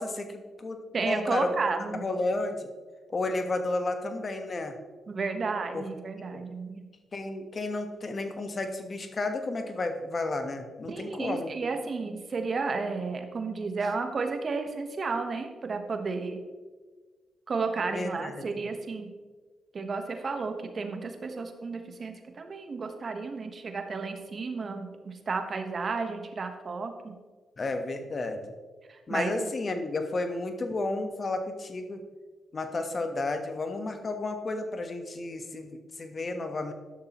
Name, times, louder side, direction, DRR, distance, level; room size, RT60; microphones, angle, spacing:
voice 1, 0.0-0.8 1.1-1.6 1.9-2.7 3.1-4.7 5.7-5.8 6.3-6.4 7.1-11.5 17.9-18.4 27.6-28.4 29.1-32.0 32.5-36.7, left 2 dB, 45° left, 6 dB, 1.2 m, -32 dB
voice 2, 0.9-2.1 5.1-6.9 10.8-16.4 17.5-19.1 19.7-27.1 28.9-29.5, right 4 dB, 50° right, 6 dB, 1.2 m, -32 dB
11.5 x 6.7 x 3.0 m, 1.4 s
supercardioid pair, 55°, 0 cm